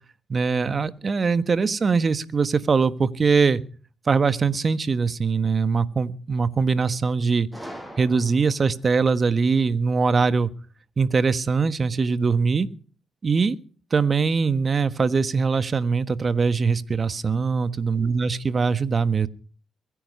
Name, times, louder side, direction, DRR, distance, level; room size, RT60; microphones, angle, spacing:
voice 1, 0.3-3.6 4.1-7.5 8.0-10.5 11.0-12.7 13.2-13.6 13.9-19.3, right 5 dB, 45° right, 12 dB, 1.3 m, -22 dB
Gunshot gunfire, 7.5-8.7, equal, 10° right, 7.6 m, -40 dB
22.5 x 10.0 x 5.6 m, 0.38 s
supercardioid pair, 65°, 0 cm